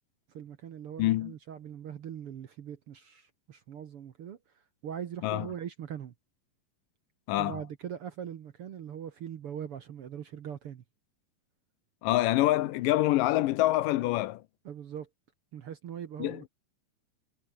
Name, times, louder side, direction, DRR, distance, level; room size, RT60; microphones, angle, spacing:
voice 1, 0.3-4.4 4.8-6.1 7.4-10.8 14.6-15.1 15.5-16.5, right 9 dB, 60° right, 1.7 m, -41 dB
voice 2, 1.0-1.3 5.2-5.5 7.3-7.6 12.0-14.4 16.2-16.4, left 16 dB, 80° left, 2.4 m, -26 dB
omnidirectional pair, 3.9 m